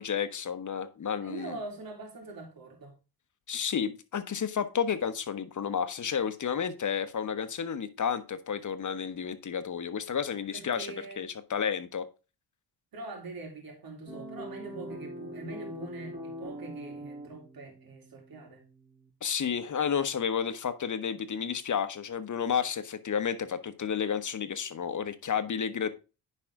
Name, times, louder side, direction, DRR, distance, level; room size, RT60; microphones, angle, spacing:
voice 1, 0.0-1.6 3.5-10.9 11.2-12.0 19.2-25.9, left 7 dB, 45° left, 1.2 m, -31 dB
voice 2, 1.2-3.0 10.5-11.2 12.9-18.6, right 3 dB, 55° right, 3.6 m, -43 dB
sound 1, 14.1-19.1, equal, 10° right, 4.9 m, -43 dB
9.8 x 5.5 x 3.7 m
cardioid pair, 80°, 42 cm